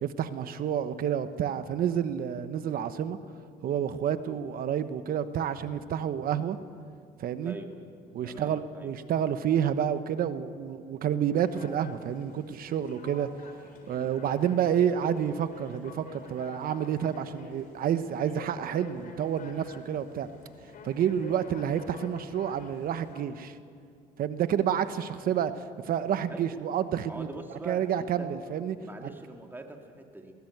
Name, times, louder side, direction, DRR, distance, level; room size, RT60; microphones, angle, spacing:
voice 1, 0.0-3.2 3.6-6.6 7.2-7.5 8.1-13.3 13.9-20.3 20.8-23.6 24.2-27.3 27.7-28.8, right 9 dB, 60° right, 12 dB, 1.1 m, -29 dB
voice 2, 7.4-7.8 8.2-8.9 26.3-26.6 27.0-28.4 28.8-30.3, right 2 dB, 10° right, 3 dB, 2.4 m, -43 dB
sound 1, 11.4-23.3, left 4 dB, 55° left, 3.7 m, -48 dB
20.5 x 17.0 x 8.1 m, 2.2 s
cardioid pair, 110°, 17 cm